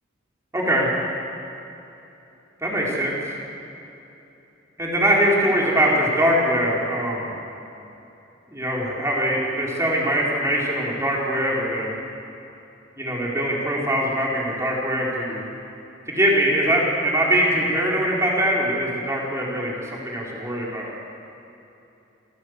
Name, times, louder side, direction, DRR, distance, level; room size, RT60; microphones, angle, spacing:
voice 1, 0.5-0.9 2.6-3.1 4.8-7.3 8.5-11.9 13.0-15.4 16.1-20.9, equal, 15° right, -4 dB, 4.5 m, -22 dB
27.5 x 16.5 x 8.1 m, 2.9 s
head